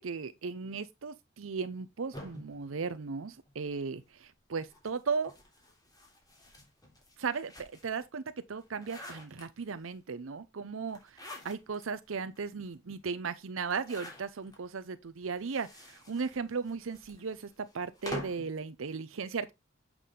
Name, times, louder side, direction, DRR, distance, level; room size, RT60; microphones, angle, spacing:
voice 1, 0.0-5.3 7.2-8.2 8.5-19.5, right 5 dB, 80° right, 0.6 m, -36 dB
sound 1, 2.1-3.7 4.6-8.0 8.5-9.9 10.9-11.9 12.3-12.4 12.7-12.8 13.6-14.6 15.3-18.5, left 1 dB, 20° left, 3.3 m, -47 dB
8.3 x 6.1 x 3.7 m
head